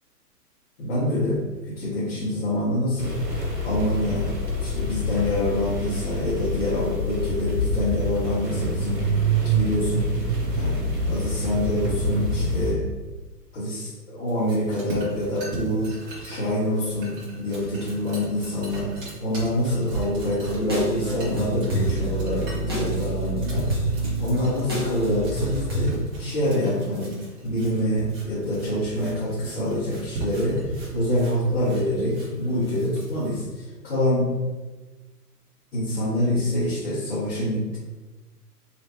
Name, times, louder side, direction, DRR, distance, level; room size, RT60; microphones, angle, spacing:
voice 1, 0.8-1.3 1.7-3.1 3.6-4.3 4.6-9.0 9.4-10.1 10.5-12.8 13.5-16.0 16.2-18.9 19.2-23.7 24.2-27.1 27.4-34.3 35.7-37.8, left 1 dB, 40° left, -10 dB, 1.2 m, -26 dB
sound 1, 3.0-12.7, equal, 90° right, 1.1 m, -26 dB
sound 2, 14.3-33.4, right 3 dB, 35° right, 1.4 m, -39 dB
sound 3, 20.6-25.9, right 2 dB, 20° right, 0.4 m, -28 dB
3.2 x 3.1 x 2.8 m, 1.2 s
figure-of-eight pair, 120°, 47 cm